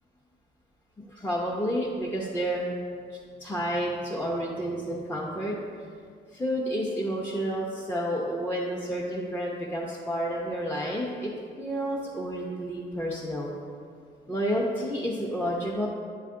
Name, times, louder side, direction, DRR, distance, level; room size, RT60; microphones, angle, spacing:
voice 1, 1.1-2.6 3.4-5.5 5.8-5.9 6.3-11.3 11.6-13.5 14.3-15.9, equal, 10° left, -5 dB, 0.7 m, -30 dB
9.2 x 3.3 x 3.7 m, 2.2 s
cardioid pair, 90°, 20 cm